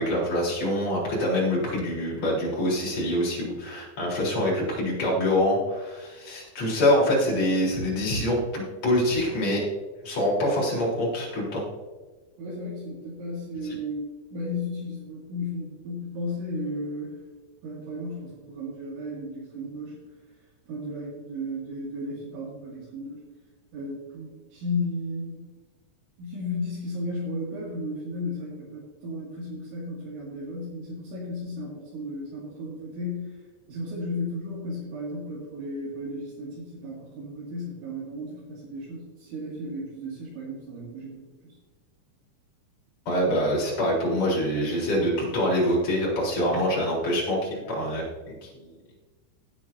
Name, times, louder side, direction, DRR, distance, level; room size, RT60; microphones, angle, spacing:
voice 1, 0.0-9.6 10.0-11.6 43.1-48.7, left 1 dB, 35° left, -5 dB, 4.6 m, -25 dB
voice 2, 12.4-17.2 17.6-19.9 20.7-23.2 23.7-25.5 26.2-33.3 33.7-41.6, left 1 dB, 70° right, -7 dB, 4.6 m, -34 dB
17.0 x 9.1 x 2.7 m, 1.3 s
omnidirectional pair, 5.7 m